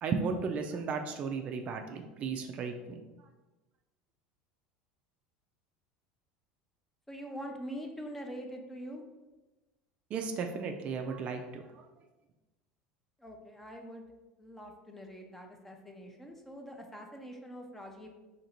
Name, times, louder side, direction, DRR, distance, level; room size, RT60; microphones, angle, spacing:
voice 1, 0.0-3.0 10.1-11.9, right 5 dB, 40° right, 5 dB, 0.4 m, -35 dB
voice 2, 7.1-9.0 13.2-14.1 14.4-18.1, equal, 10° left, 2 dB, 0.5 m, -44 dB
2.9 x 2.6 x 4.3 m, 1.1 s
supercardioid pair, 120°, 3 cm